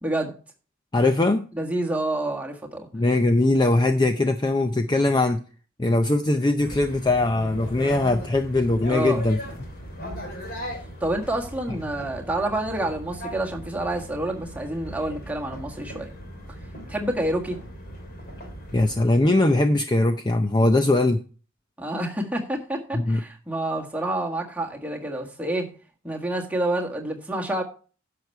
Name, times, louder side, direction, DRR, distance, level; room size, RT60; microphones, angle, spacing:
voice 1, 0.0-0.3 1.6-2.9 8.9-9.2 11.0-16.1 16.9-17.6 21.8-25.7 26.0-27.6, right 1 dB, 5° right, 0 dB, 1.6 m, -28 dB
voice 2, 0.9-1.5 2.9-5.4 5.8-9.4 18.7-21.2 22.9-23.2, left 2 dB, 20° left, 7 dB, 0.5 m, -21 dB
sound 1, 6.6-19.0, equal, 45° left, 3.2 m, -38 dB
11.0 x 6.7 x 4.5 m, 0.38 s
head